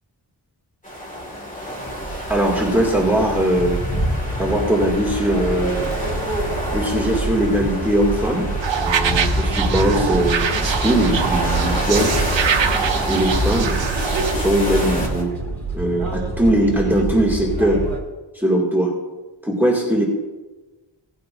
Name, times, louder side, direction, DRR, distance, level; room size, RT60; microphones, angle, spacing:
sound 1, 0.8-15.2, equal, 15° left, 2.0 m, -26 dB
voice 1, 2.3-3.8 4.4-5.9 6.7-8.5 8.8-12.2 13.1-13.8 14.3-15.3 15.7-17.8 18.3-18.9 19.4-20.0, right 1 dB, 5° right, -3 dB, 2.2 m, -20 dB
sound 2, 5.3-18.0, right 3 dB, 50° right, 2.5 m, -27 dB
sound 3, 8.6-14.3, right 7 dB, 75° right, 0.8 m, -24 dB
17.0 x 9.4 x 2.6 m, 1.2 s
wide cardioid pair, 90°, 45 cm